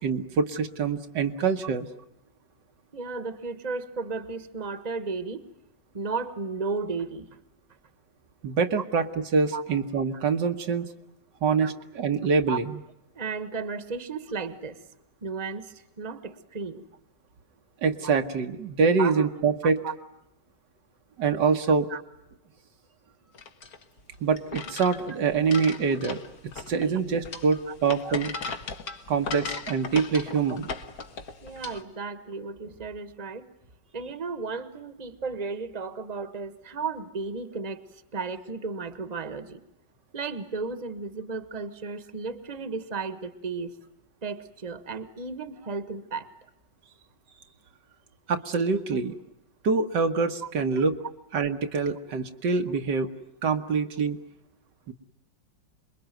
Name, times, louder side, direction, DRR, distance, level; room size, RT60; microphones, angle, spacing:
voice 1, 0.0-1.9 8.4-10.9 11.4-12.8 17.8-19.8 21.2-21.9 24.2-26.2 26.7-28.3 29.1-30.7 48.3-49.2 49.6-51.0 51.3-53.1 53.4-54.2 54.9-55.0, right 5 dB, 70° right, 6 dB, 1.9 m, -25 dB
voice 2, 2.9-5.5 5.9-7.3 9.5-9.6 11.6-11.7 12.5-12.6 13.1-14.8 15.2-16.9 19.0-19.3 19.8-19.9 21.9-22.0 26.1-26.2 26.8-27.0 27.7-27.8 31.4-33.5 33.9-39.6 40.1-43.7 44.2-46.3 50.4-50.5, right 4 dB, 25° right, 12 dB, 1.4 m, -34 dB
sound 1, 23.3-31.8, left 4 dB, 55° left, 1.8 m, -38 dB
27.0 x 22.0 x 9.2 m, 0.83 s
omnidirectional pair, 2.0 m